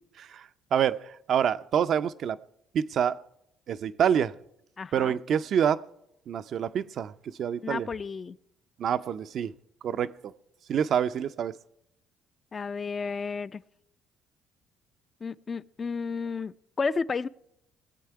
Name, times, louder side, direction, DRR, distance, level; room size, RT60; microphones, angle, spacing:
voice 1, 0.7-2.4 2.7-3.2 3.7-4.3 4.9-5.8 6.3-7.1 7.4-7.9 8.8-9.5 9.8-10.3 10.7-11.6, right 8 dB, 60° right, 0.4 m, -26 dB
voice 2, 4.8-5.2 7.6-8.4 12.5-13.6 15.2-17.3, left 4 dB, 35° left, 0.4 m, -32 dB
19.5 x 8.1 x 4.7 m
supercardioid pair, 70°, 0 cm